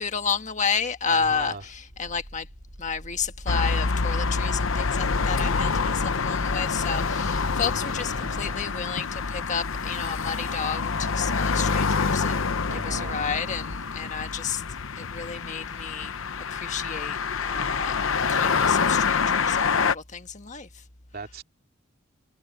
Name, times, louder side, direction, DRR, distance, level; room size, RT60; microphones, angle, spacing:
voice 1, 0.0-2.5 2.8-14.6 14.9-16.1 16.5-20.8, left 6 dB, 35° left, 1.5 m, -31 dB
voice 2, 1.1-1.7 8.0-8.8 12.6-13.3 21.1-21.4, right 3 dB, 50° right, 2.7 m, -39 dB
sound 1, 1.2-9.4, equal, 75° right, 5.7 m, -45 dB
sound 2, 3.5-19.9, left 5 dB, 80° left, 0.9 m, -26 dB
sound 3, 9.4-13.8, equal, 15° left, 3.2 m, -46 dB
head